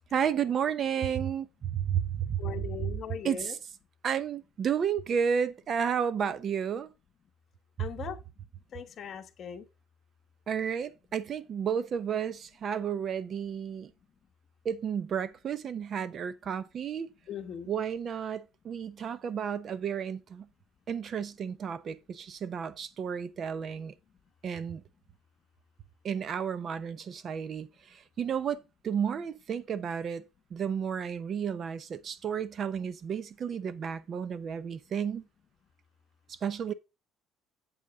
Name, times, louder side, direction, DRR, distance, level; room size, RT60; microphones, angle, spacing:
voice 1, 0.1-2.9 3.2-3.6 4.0-6.9 10.5-13.9 14.6-17.1 17.7-20.5 20.9-23.9 24.4-24.8 26.0-30.2 30.5-35.2 36.3-36.7, right 7 dB, 35° right, 0.8 m, -32 dB
voice 2, 2.4-3.5 7.8-8.2 8.7-9.6 17.3-17.7, left 8 dB, 40° left, 1.3 m, -39 dB
8.4 x 8.1 x 3.7 m
cardioid pair, 155°, 0 cm